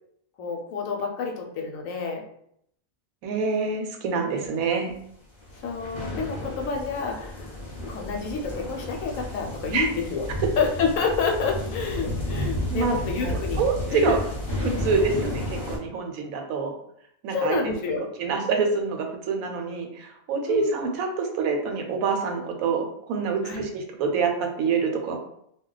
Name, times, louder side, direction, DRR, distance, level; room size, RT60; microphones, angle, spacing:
voice 1, 0.4-2.2 4.3-4.4 5.6-7.5 7.9-10.3 10.6-13.6 13.9-14.2 15.2-15.3 17.3-18.1 20.5-20.8 23.4-23.6, left 5 dB, 75° left, 2 dB, 1.0 m, -29 dB
voice 2, 3.2-4.9 9.7-9.9 12.7-14.2 14.6-15.4 15.7-16.8 17.2-17.8 18.2-25.2, right 5 dB, 85° right, 4 dB, 1.0 m, -26 dB
sound 1, 5.4-15.8, left 1 dB, 40° left, 0.8 m, -32 dB
2.3 x 2.2 x 3.8 m, 0.72 s
omnidirectional pair, 1.4 m